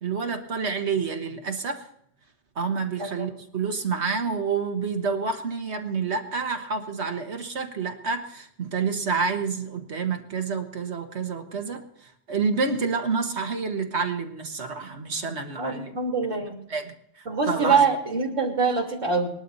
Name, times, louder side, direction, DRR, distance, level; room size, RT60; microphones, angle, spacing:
voice 1, 0.0-1.9 2.6-15.9 16.7-16.9 17.5-17.8, right 5 dB, 65° right, 5 dB, 1.6 m, -28 dB
voice 2, 15.6-16.6 17.3-19.3, right 5 dB, 85° right, -1 dB, 3.1 m, -24 dB
20.0 x 12.0 x 4.1 m, 0.71 s
omnidirectional pair, 1.3 m